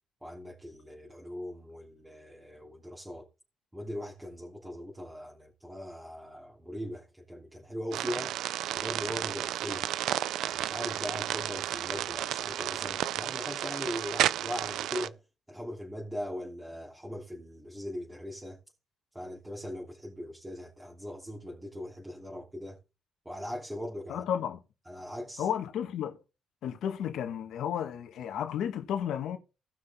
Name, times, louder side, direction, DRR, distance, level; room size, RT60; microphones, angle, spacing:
voice 1, 0.2-3.2 3.7-8.3 8.8-9.9 10.4-15.2 15.5-18.6 19.1-22.8 23.2-24.2 24.9-25.5, equal, 10° right, 3.1 m, -40 dB
sound 1, 7.9-15.1, right 12 dB, 85° right, 0.5 m, -32 dB
voice 2, 24.1-24.6 25.4-26.2 26.6-29.4, left 9 dB, 75° left, 1.8 m, -32 dB
18.0 x 6.1 x 3.8 m
cardioid pair, 90°, 0 cm